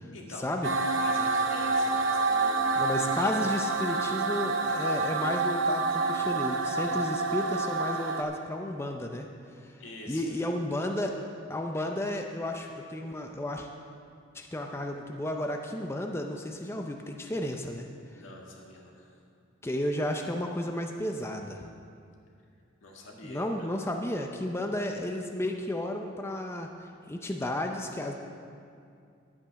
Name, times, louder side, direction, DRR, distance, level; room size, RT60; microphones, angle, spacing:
voice 1, 0.1-0.5 1.0-3.1 9.8-10.4 18.1-19.2 22.8-23.7 24.6-24.9, left 1 dB, 75° left, -1 dB, 1.9 m, -46 dB
sound 1, 0.6-8.2, right 3 dB, 75° right, 0.8 m, -28 dB
voice 2, 2.8-9.3 9.6-9.7 10.1-11.1 11.5-13.7 14.3-17.9 19.6-21.7 23.2-28.1, left 1 dB, 15° left, 3 dB, 0.5 m, -33 dB
11.0 x 8.7 x 5.8 m, 2.4 s
head